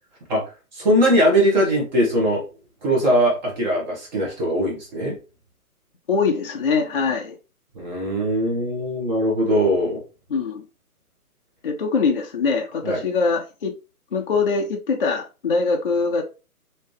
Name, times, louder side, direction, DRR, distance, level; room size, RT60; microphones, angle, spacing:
voice 1, 0.7-2.4 2.8-5.1 7.7-10.0 12.8-13.0, equal, 30° right, 1.2 m, -20 dB
voice 2, 6.1-7.4 10.3-10.6 11.6-13.7 14.1-16.2, left 4 dB, 40° left, 0.4 m, -23 dB
3.2 x 2.8 x 3.1 m
hypercardioid pair, 145°, 46 cm